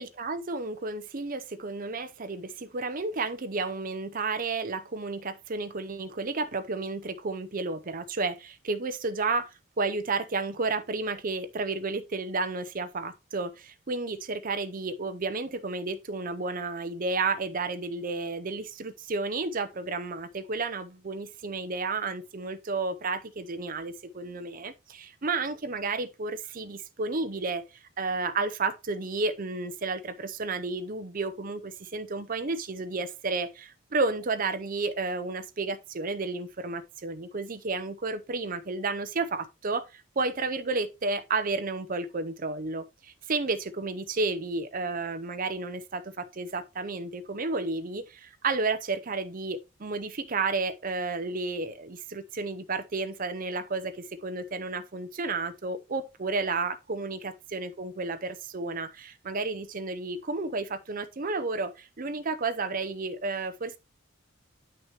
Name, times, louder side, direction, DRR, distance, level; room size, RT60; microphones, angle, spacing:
voice 1, 0.0-27.6 28.0-63.8, right 3 dB, 45° right, 0.7 m, -32 dB
8.9 x 6.1 x 3.0 m
head